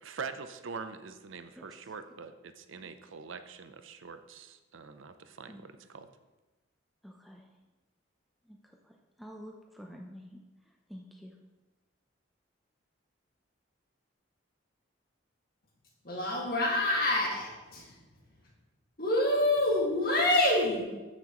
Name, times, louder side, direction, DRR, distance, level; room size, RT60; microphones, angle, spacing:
voice 1, 0.0-6.1, right 5 dB, 85° right, 9 dB, 0.6 m, -44 dB
voice 2, 7.0-7.5 8.4-11.4, equal, ahead, 0 dB, 0.5 m, -49 dB
voice 3, 16.0-18.0 19.0-20.8, left 1 dB, 50° left, -1 dB, 1.8 m, -27 dB
13.5 x 6.1 x 3.0 m, 1.1 s
head